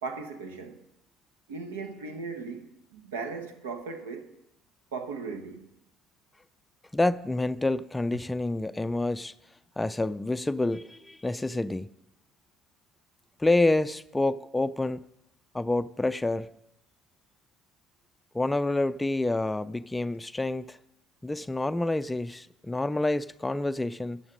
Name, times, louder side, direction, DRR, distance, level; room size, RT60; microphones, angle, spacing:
voice 1, 0.0-0.8 1.5-4.3 4.9-5.6, right 4 dB, 75° right, 1.2 m, -37 dB
voice 2, 6.9-9.3 9.8-11.9 13.4-15.0 15.5-16.5 18.3-20.8 21.2-24.2, left 2 dB, 10° left, 0.4 m, -28 dB
14.0 x 9.1 x 5.2 m
figure-of-eight pair, 55°, 0 cm